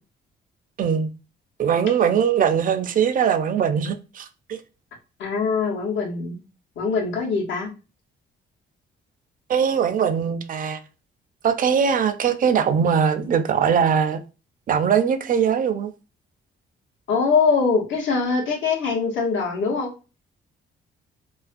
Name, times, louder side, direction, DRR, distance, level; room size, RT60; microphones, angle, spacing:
voice 1, 0.8-1.1 1.6-4.6 9.5-10.8 11.4-14.2 14.7-15.9, right 7 dB, 45° right, 0.4 m, -21 dB
voice 2, 5.2-6.4 6.8-7.7 17.1-19.9, left 5 dB, 70° left, 0.9 m, -22 dB
2.4 x 2.2 x 2.4 m
cardioid pair, 90°, 20 cm